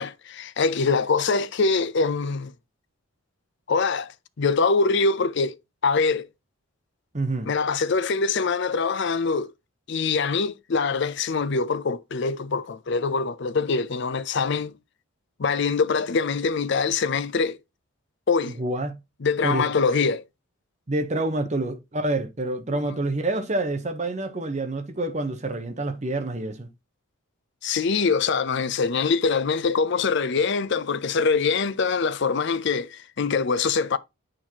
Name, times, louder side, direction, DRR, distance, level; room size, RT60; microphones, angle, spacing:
voice 1, 0.0-2.5 3.7-4.1 4.4-5.6 5.8-6.3 7.5-9.5 9.9-14.7 15.4-17.6 18.3-18.6 19.2-20.2 22.7-23.0 27.6-34.0, left 4 dB, 55° left, 0.5 m, -24 dB
voice 2, 7.1-7.5 18.6-19.0 19.4-19.6 20.9-26.7, right 2 dB, 30° right, 0.9 m, -27 dB
8.9 x 4.5 x 2.8 m
head